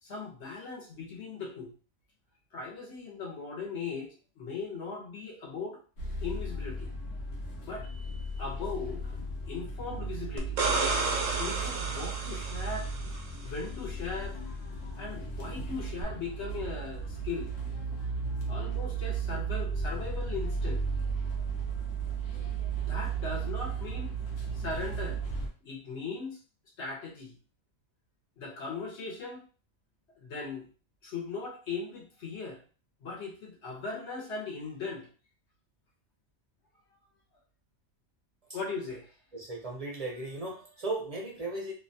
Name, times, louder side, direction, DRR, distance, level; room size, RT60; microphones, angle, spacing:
voice 1, 0.0-1.7 2.5-5.8 6.2-6.9 7.6-7.9 8.4-9.1 9.4-10.6 11.4-12.9 13.4-14.4 15.0-17.5 18.5-20.9 22.8-24.1 24.5-25.2 25.6-26.4 26.8-27.3 28.4-29.4 30.2-30.7 31.0-32.6 33.0-35.1 38.5-39.1, left 4 dB, 65° left, -1 dB, 1.1 m, -38 dB
sound 1, 6.0-25.5, right 4 dB, 90° left, 1.0 m, -35 dB
sound 2, 10.4-13.2 16.0-16.1, right 3 dB, 90° right, 1.0 m, -31 dB
voice 2, 39.3-41.7, right 2 dB, 50° right, -2 dB, 0.4 m, -36 dB
2.7 x 2.2 x 2.6 m, 0.38 s
omnidirectional pair, 1.3 m